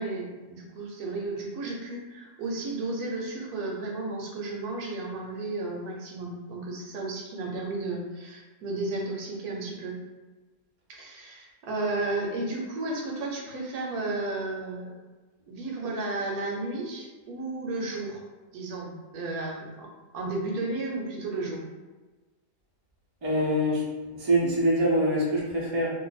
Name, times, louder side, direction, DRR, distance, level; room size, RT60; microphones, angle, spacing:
voice 1, 0.0-10.0 10.9-14.9 15.5-18.2 18.5-19.9 20.1-21.6, right 2 dB, 70° right, -1 dB, 1.1 m, -33 dB
voice 2, 23.2-23.8 24.1-25.9, equal, 30° right, -6 dB, 0.4 m, -24 dB
2.6 x 2.5 x 3.9 m, 1.3 s
omnidirectional pair, 1.7 m